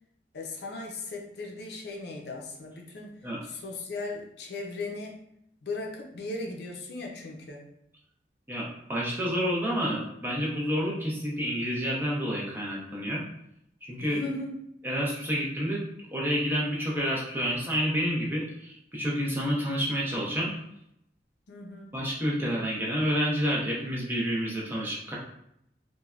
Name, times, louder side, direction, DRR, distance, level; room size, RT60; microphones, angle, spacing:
voice 1, 0.3-3.1 3.4-5.2 5.6-7.6 14.0-14.5 21.5-22.0, left 2 dB, 65° left, 1 dB, 0.5 m, -37 dB
voice 2, 8.5-13.2 13.8-14.2 14.8-15.8 16.1-20.5 21.9-25.2, equal, 10° right, -4 dB, 0.5 m, -29 dB
3.1 x 2.2 x 2.4 m, 0.76 s
head